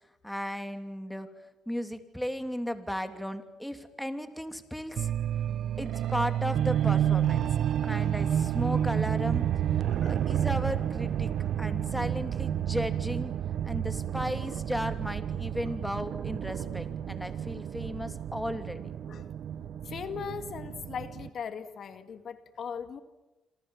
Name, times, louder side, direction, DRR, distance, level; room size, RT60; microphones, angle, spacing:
voice 1, 0.2-1.3 1.7-5.1 5.8-7.5 7.8-9.5 10.1-11.3 11.6-13.3 13.6-18.8, equal, 5° left, 8 dB, 3.1 m, -35 dB
sound 1, 5.0-21.3, right 10 dB, 70° right, 1.1 m, -30 dB
voice 2, 19.8-23.0, left 7 dB, 60° left, 10 dB, 2.0 m, -39 dB
27.5 x 27.0 x 7.3 m, 1.1 s
cardioid pair, 90°, 0 cm